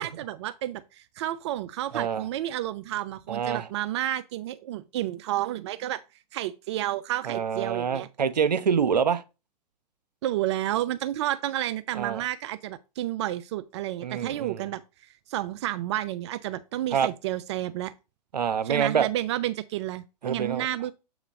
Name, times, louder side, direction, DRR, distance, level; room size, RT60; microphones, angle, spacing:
voice 1, 0.0-6.0 6.3-8.1 10.2-17.9 18.6-20.9, right 14 dB, 40° right, 0.4 m, -31 dB
voice 2, 1.9-2.2 3.3-3.7 7.3-9.2 11.9-12.2 14.0-14.7 16.9-17.1 18.3-19.1 20.2-20.7, right 7 dB, 75° right, 0.8 m, -26 dB
7.6 x 3.0 x 5.1 m
figure-of-eight pair, 110°, 21 cm